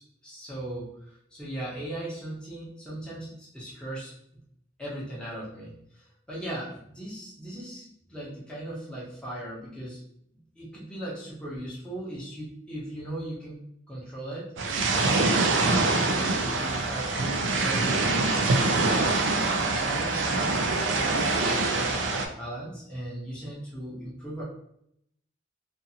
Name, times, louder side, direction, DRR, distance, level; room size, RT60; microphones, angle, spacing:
voice 1, 0.2-4.1 4.8-10.0 10.6-13.6 13.9-24.4, right 1 dB, 5° left, -7 dB, 0.7 m, -38 dB
sound 1, 14.6-22.3, right 3 dB, 75° right, 0.4 m, -25 dB
2.5 x 2.5 x 2.7 m, 0.73 s
head